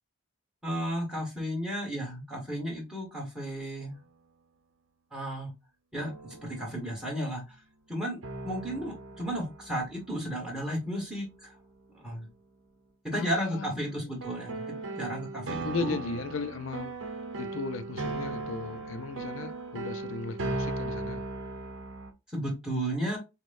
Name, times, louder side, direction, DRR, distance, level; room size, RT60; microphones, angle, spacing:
voice 1, 0.6-3.9 5.1-5.5 5.9-7.4 7.9-8.2 8.4-11.5 12.0-12.3 13.0-16.0 22.3-23.2, equal, 5° right, 1.4 m, -33 dB
sound 1, 3.9-4.0 6.0-7.0 8.2-11.5 14.2-22.1, right 2 dB, 70° right, 0.8 m, -38 dB
voice 2, 13.1-14.1 15.6-16.9 17.4-21.2, left 4 dB, 75° left, 0.4 m, -36 dB
6.1 x 2.2 x 2.6 m
head